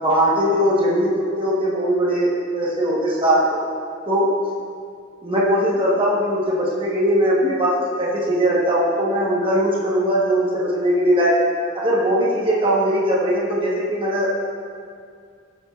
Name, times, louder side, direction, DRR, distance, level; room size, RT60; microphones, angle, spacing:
voice 1, 0.0-3.6 4.1-4.3 5.2-11.4 11.7-14.4, equal, 25° right, -5 dB, 1.2 m, -20 dB
13.0 x 7.8 x 2.4 m, 2.2 s
head